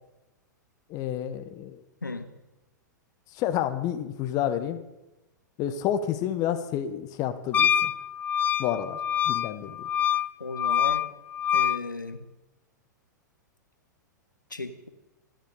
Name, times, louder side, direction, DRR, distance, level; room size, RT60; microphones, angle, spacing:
voice 1, 0.9-1.8 3.3-4.8 5.6-7.9 8.6-9.0 9.3-9.9, left 10 dB, 35° left, 9 dB, 1.4 m, -29 dB
Wind instrument woodwind instrument, 7.5-11.8, left 9 dB, 20° left, 0.5 m, -25 dB
voice 2, 10.4-11.1 11.5-12.3 14.5-14.9, left 3 dB, 85° left, 9 dB, 1.6 m, -35 dB
26.5 x 10.5 x 5.1 m, 1.0 s
figure-of-eight pair, 100°, 10 cm